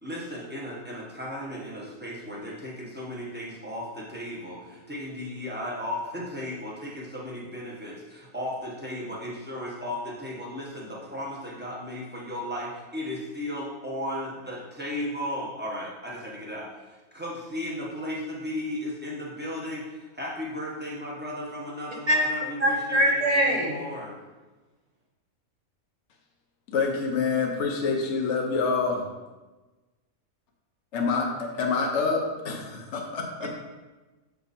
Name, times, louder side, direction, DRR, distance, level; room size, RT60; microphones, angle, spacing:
voice 1, 0.0-24.2, left 1 dB, 10° right, -5 dB, 1.1 m, -35 dB
voice 2, 22.6-23.8 33.4-33.5, equal, 35° right, -1 dB, 0.8 m, -23 dB
voice 3, 26.7-29.1 30.9-32.6 32.9-33.5, left 4 dB, 60° left, 1 dB, 1.1 m, -26 dB
7.3 x 3.5 x 4.2 m, 1.2 s
omnidirectional pair, 1.5 m